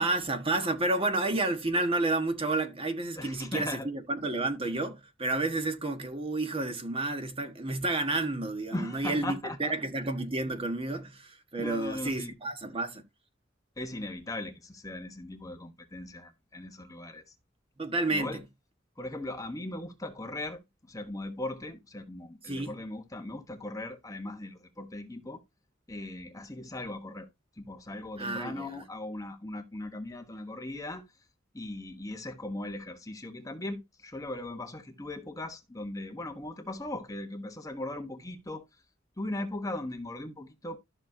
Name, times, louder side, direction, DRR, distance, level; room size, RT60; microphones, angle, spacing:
voice 1, 0.0-13.0 17.8-18.4 22.5-22.8 28.2-28.8, right 2 dB, 30° right, 1.5 m, -30 dB
voice 2, 3.2-3.9 8.7-9.7 11.6-12.3 13.8-17.2 18.1-18.4 19.0-25.4 25.9-27.3 27.6-31.0 31.5-38.6 39.2-40.8, left 1 dB, 20° left, 1.2 m, -39 dB
13.0 x 6.1 x 2.8 m
head